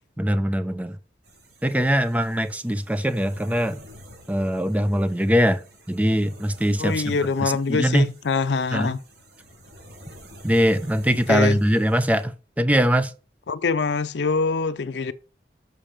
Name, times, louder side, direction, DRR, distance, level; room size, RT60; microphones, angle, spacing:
voice 1, 0.2-1.0 1.6-3.8 4.3-5.6 5.9-8.1 8.7-8.9 10.4-13.1, equal, 10° right, 0.5 m, -22 dB
sound 1, 1.2-12.2, equal, 85° right, 4.5 m, -49 dB
voice 2, 6.8-9.0 11.3-11.6 13.5-15.1, left 4 dB, 80° left, 0.5 m, -24 dB
7.2 x 5.5 x 5.0 m
head